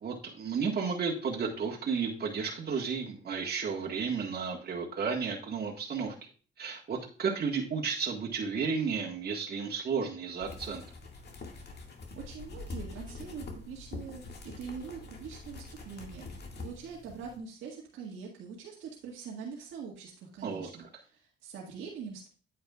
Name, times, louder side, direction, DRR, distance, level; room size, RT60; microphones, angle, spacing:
voice 1, 0.0-6.1 6.6-10.8 20.4-20.9, right 5 dB, 50° right, -2 dB, 1.7 m, -33 dB
sound 1, 10.4-17.4, left 3 dB, 55° left, 2.0 m, -44 dB
voice 2, 12.2-22.3, right 6 dB, 90° right, -3 dB, 1.9 m, -44 dB
9.3 x 8.6 x 2.4 m, 0.39 s
cardioid pair, 90°, 20 cm